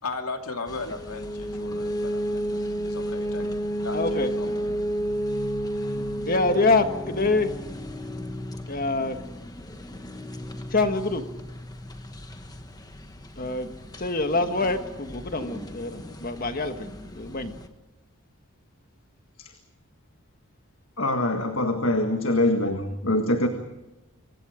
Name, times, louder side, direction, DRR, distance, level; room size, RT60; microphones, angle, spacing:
voice 1, 0.0-3.5 3.8-4.7, left 3 dB, 85° left, 4 dB, 2.6 m, -37 dB
sound 1, 0.7-17.7, equal, 15° left, 1.4 m, -33 dB
voice 2, 3.9-4.3 6.3-7.5 8.7-9.2 10.7-11.2 13.4-13.7 14.0-17.6, left 3 dB, 40° left, 7 dB, 1.6 m, -25 dB
voice 3, 21.0-23.5, left 1 dB, 65° left, 5 dB, 1.7 m, -24 dB
26.0 x 25.0 x 5.1 m, 1.0 s
head